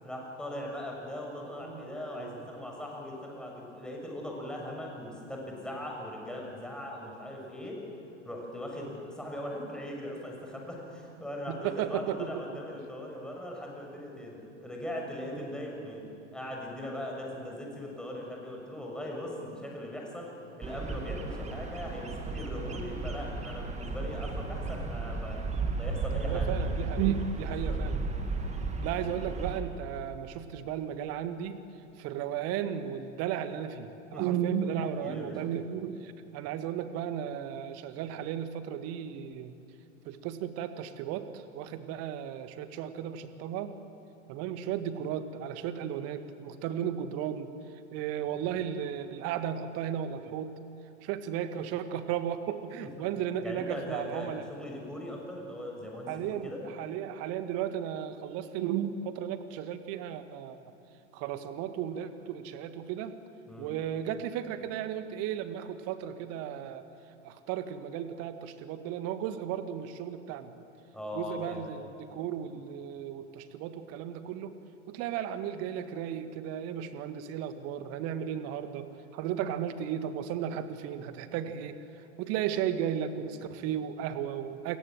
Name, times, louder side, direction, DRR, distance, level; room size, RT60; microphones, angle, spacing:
voice 1, 0.0-7.8 8.2-20.3 20.6-25.4 25.8-26.5 27.4-27.8 34.1-34.2 35.0-35.3 48.5-48.6 53.4-56.6 63.5-63.7 70.9-71.6, left 1 dB, ahead, -1 dB, 6.9 m, -40 dB
voice 2, 1.6-2.4 8.8-8.9 11.5-12.4 15.3-15.5 26.3-28.0 28.8-31.6 32.0-39.5 40.1-43.8 44.3-47.5 47.9-50.5 51.0-54.4 56.1-60.6 61.1-63.1 63.6-66.8 67.2-70.5 71.1-74.5 74.9-78.9 79.1-81.8 82.2-84.8, right 9 dB, 40° right, 10 dB, 1.8 m, -35 dB
Bird vocalization bird call bird song, 20.6-29.6, right 3 dB, 20° right, 2.7 m, -34 dB
28.5 x 22.5 x 7.8 m, 2.8 s
figure-of-eight pair, 85°, 37 cm